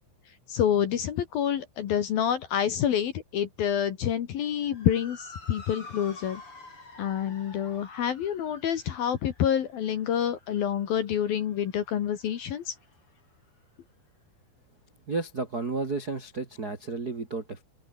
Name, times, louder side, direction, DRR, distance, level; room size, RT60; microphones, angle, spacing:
voice 1, 0.5-6.4 7.0-12.7, left 9 dB, 60° left, 2.9 m, -27 dB
Motor vehicle (road) / Siren, 4.6-13.2, left 2 dB, 25° left, 7.9 m, -49 dB
voice 2, 15.1-17.6, right 3 dB, 35° right, 1.5 m, -32 dB
open air
omnidirectional pair, 5.8 m